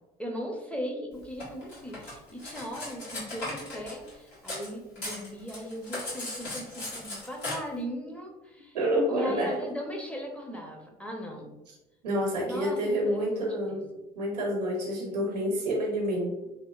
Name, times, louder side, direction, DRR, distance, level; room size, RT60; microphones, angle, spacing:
voice 1, 0.2-8.8 9.1-11.5 12.4-13.8, equal, 5° left, 1 dB, 0.5 m, -38 dB
Cutlery silverware, 1.4-4.7 5.0-7.5, left 2 dB, 65° left, 1.3 m, -37 dB
voice 2, 8.7-9.6 12.0-13.8 14.2-16.5, equal, 85° right, -1 dB, 0.6 m, -28 dB
2.7 x 2.0 x 2.3 m, 0.98 s
hypercardioid pair, 60°, 20 cm